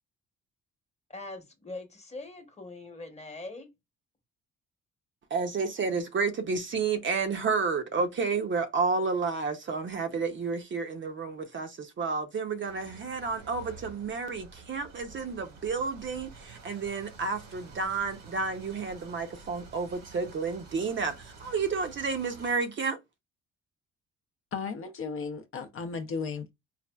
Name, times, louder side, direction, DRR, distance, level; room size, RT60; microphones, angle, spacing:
voice 1, 1.1-3.7, left 2 dB, 20° left, 0.9 m, -42 dB
voice 2, 5.3-23.0, right 4 dB, 40° right, 0.6 m, -31 dB
sound 1, 12.6-22.5, right 4 dB, 75° right, 1.2 m, -50 dB
voice 3, 24.5-26.5, left 5 dB, 45° left, 0.5 m, -35 dB
4.1 x 2.3 x 2.2 m
cardioid pair, 90°, 30 cm